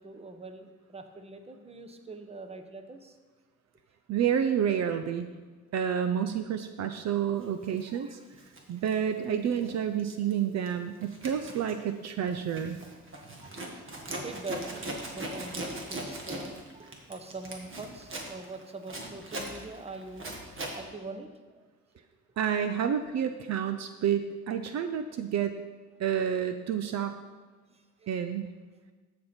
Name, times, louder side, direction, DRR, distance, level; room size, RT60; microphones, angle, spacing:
voice 1, 0.0-3.2 7.9-8.2 8.8-8.9 13.1-20.3 20.7-21.7 27.7-28.1, right 3 dB, 20° right, 7 dB, 0.9 m, -44 dB
voice 2, 4.1-5.3 5.7-8.2 8.7-12.8 22.4-25.6 26.0-27.1 28.1-28.5, right 8 dB, 60° right, 9 dB, 0.6 m, -29 dB
Zipper (clothing), 7.6-7.8 8.3-9.7 10.0-10.3 10.7-20.8, right 1 dB, 45° right, 1.7 m, -40 dB
13.5 x 5.3 x 4.3 m, 1.3 s
cardioid pair, 90°, 30 cm